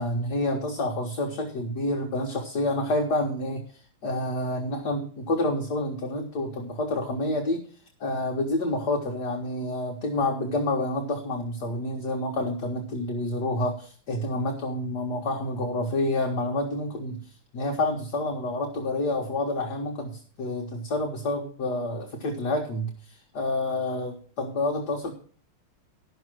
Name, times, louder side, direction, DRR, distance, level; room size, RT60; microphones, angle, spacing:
voice 1, 0.0-7.6 8.0-25.1, left 1 dB, 55° left, 1 dB, 1.7 m, -28 dB
11.5 x 6.3 x 6.1 m, 0.43 s
omnidirectional pair, 2.3 m